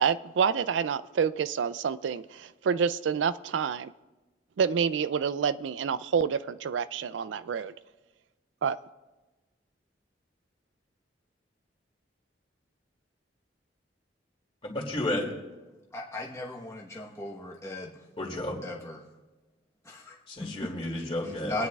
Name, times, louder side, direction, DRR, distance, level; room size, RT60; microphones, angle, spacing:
voice 1, 0.0-3.9 4.6-7.7 8.6-8.8, right 6 dB, 85° right, 15 dB, 0.4 m, -28 dB
voice 2, 14.6-15.3 18.2-18.6 20.3-21.7, left 1 dB, 30° left, 0 dB, 2.5 m, -32 dB
voice 3, 15.9-17.9 18.6-19.0 19.9-20.1 21.4-21.7, left 2 dB, 15° left, -3 dB, 1.1 m, -36 dB
24.5 x 9.6 x 2.4 m, 1.2 s
head